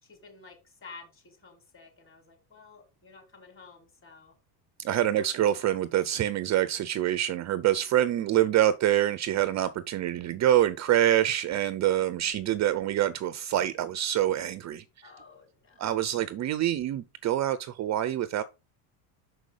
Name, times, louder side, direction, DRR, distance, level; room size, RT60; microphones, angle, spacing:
voice 1, 0.0-4.3 5.1-5.5 12.0-12.4 15.0-16.2, left 4 dB, 25° left, 3.4 m, -52 dB
voice 2, 4.8-14.8 15.8-18.4, right 12 dB, 35° right, 0.6 m, -26 dB
6.1 x 5.3 x 4.9 m
supercardioid pair, 110°, 46 cm